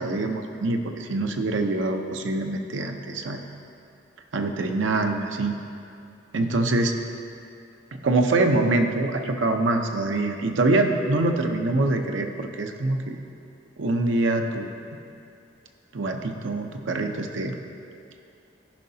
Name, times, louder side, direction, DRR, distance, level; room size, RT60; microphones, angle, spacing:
voice 1, 0.0-3.4 4.3-5.6 6.3-6.9 8.0-13.2 13.8-14.7 15.9-17.6, right 2 dB, 85° right, 4 dB, 0.7 m, -24 dB
14.5 x 5.5 x 2.8 m, 2.5 s
head